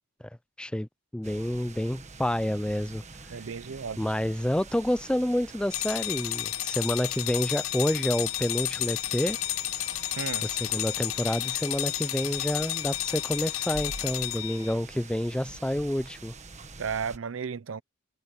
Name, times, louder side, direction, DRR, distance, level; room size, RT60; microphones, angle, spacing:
voice 1, 0.6-0.9 1.1-3.0 4.0-9.4 10.4-16.3, left 1 dB, 5° left, 0.4 m, -29 dB
sound 1, 1.2-17.2, right 4 dB, 35° right, 1.5 m, -46 dB
voice 2, 3.3-4.1 10.1-10.4 16.8-17.8, right 6 dB, 80° right, 0.6 m, -34 dB
sound 2, 5.7-14.7, left 17 dB, 90° left, 0.5 m, -32 dB
head